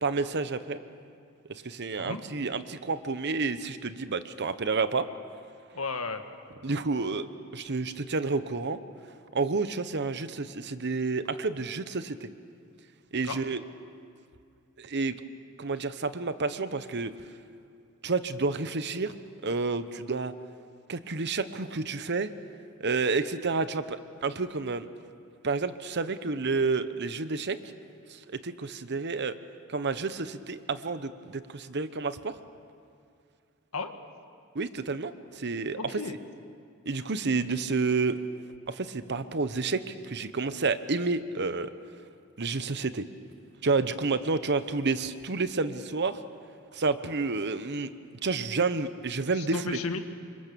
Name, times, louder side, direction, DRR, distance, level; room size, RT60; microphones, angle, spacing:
voice 1, 0.0-0.8 1.5-5.0 6.6-7.3 7.5-8.8 9.3-12.3 13.1-13.6 14.8-15.1 15.6-17.1 18.0-19.1 19.4-20.3 20.9-22.3 22.8-24.9 25.4-27.6 28.1-29.4 29.7-32.3 34.5-36.0 36.9-38.2 38.7-41.7 42.4-43.1 43.6-46.2 46.7-47.9 48.2-49.8, right 4 dB, 55° right, 12 dB, 1.0 m, -30 dB
voice 2, 5.7-6.2 13.3-13.5 33.7-33.9 35.8-36.2 49.4-50.0, left 3 dB, 80° left, 7 dB, 1.7 m, -33 dB
28.0 x 25.5 x 7.0 m, 2.3 s
head